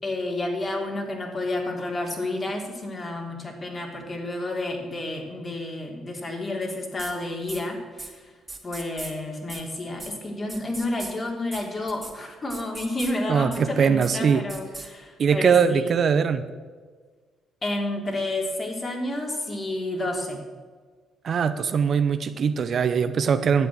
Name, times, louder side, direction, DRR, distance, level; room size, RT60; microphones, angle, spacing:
voice 1, 0.0-8.3 8.6-15.9 17.6-20.4, left 2 dB, 35° left, 1 dB, 3.3 m, -30 dB
sound 1, 7.0-7.1 7.5-7.6 8.0-8.1 8.5-9.1 9.5-9.6 10.0-10.1 10.5-11.1 11.5-11.6 11.9-12.1 12.5-13.1 13.5-13.6 14.0-14.1 14.5-14.9, right 3 dB, 20° right, 2.5 m, -37 dB
voice 2, 13.3-14.4 15.2-16.4 21.2-23.7, right 6 dB, 55° right, 11 dB, 0.7 m, -21 dB
11.0 x 8.1 x 7.7 m, 1.5 s
hypercardioid pair, 55°, 0 cm